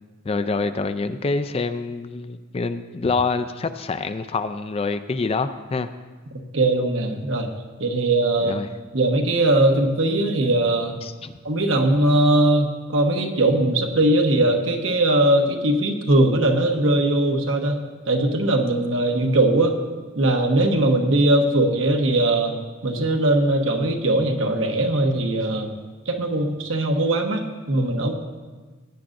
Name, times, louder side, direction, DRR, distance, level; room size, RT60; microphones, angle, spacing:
voice 1, 0.2-5.9 8.4-8.7 11.0-11.3, left 3 dB, 30° left, 11 dB, 0.4 m, -26 dB
voice 2, 6.5-7.5 7.8-8.6 8.9-11.0 11.4-17.8 18.1-19.7 20.1-22.6 22.8-25.7 26.1-28.1, right 1 dB, 75° right, 3 dB, 1.1 m, -20 dB
16.0 x 9.8 x 2.6 m, 1.4 s
head